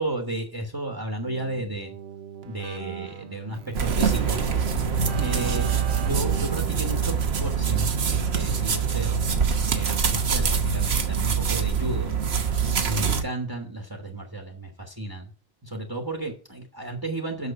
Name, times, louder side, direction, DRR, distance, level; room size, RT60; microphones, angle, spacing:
voice 1, 0.0-1.9 2.4-5.7 6.0-9.3 9.7-12.1 12.8-15.3 15.6-17.5, right 1 dB, 20° right, 3 dB, 1.3 m, -33 dB
Keyboard (musical), 1.2-8.5, right 8 dB, 60° right, 0.8 m, -40 dB
sound 1, 3.7-13.2, right 6 dB, 85° right, 1.4 m, -24 dB
6.7 x 6.3 x 6.9 m, 0.39 s
omnidirectional pair, 1.0 m